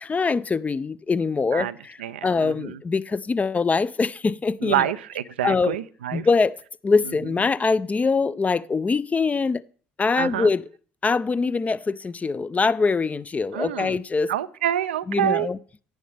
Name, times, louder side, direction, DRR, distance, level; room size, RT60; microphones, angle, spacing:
voice 1, 0.0-2.0 2.2-4.8 5.4-5.8 6.1-6.5 6.8-9.6 10.0-10.6 11.0-14.3 15.1-15.6, left 4 dB, 25° left, 0.5 m, -23 dB
voice 2, 1.5-2.8 4.6-6.3 7.0-7.1 10.1-10.5 13.5-14.0 14.3-15.5, right 12 dB, 85° right, 0.4 m, -27 dB
10.5 x 9.9 x 3.4 m
hypercardioid pair, 60°, 6 cm